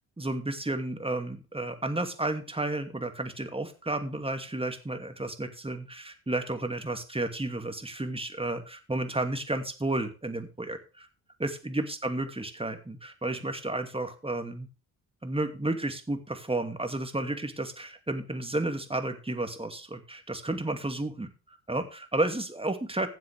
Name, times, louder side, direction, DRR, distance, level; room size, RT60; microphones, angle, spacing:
voice 1, 0.2-11.1 11.4-14.7 15.2-23.1, right 2 dB, 10° right, 7 dB, 2.5 m, -32 dB
16.5 x 7.6 x 3.5 m, 0.32 s
hypercardioid pair, 45°, 46 cm